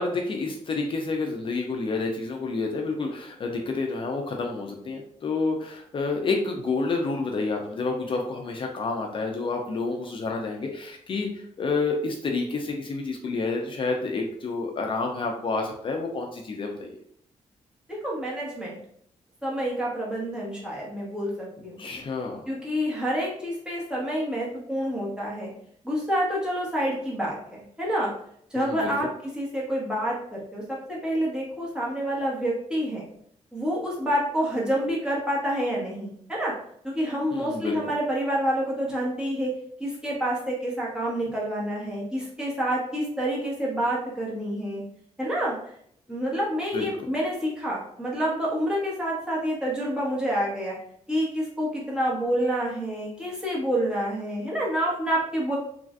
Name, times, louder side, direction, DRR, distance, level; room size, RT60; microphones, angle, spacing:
voice 1, 0.0-17.0 21.8-22.5 28.5-28.9 37.3-37.8 46.7-46.9, left 3 dB, 45° left, 2 dB, 0.4 m, -29 dB
voice 2, 17.9-18.8 19.4-21.8 22.5-25.5 25.8-28.1 28.5-29.1 29.3-33.1 33.5-36.5 36.8-39.5 39.8-44.8 45.2-45.6 46.1-50.7 51.1-55.6, equal, 5° right, -6 dB, 1.1 m, -28 dB
3.1 x 2.4 x 2.4 m, 0.68 s
wide cardioid pair, 125°, 13 cm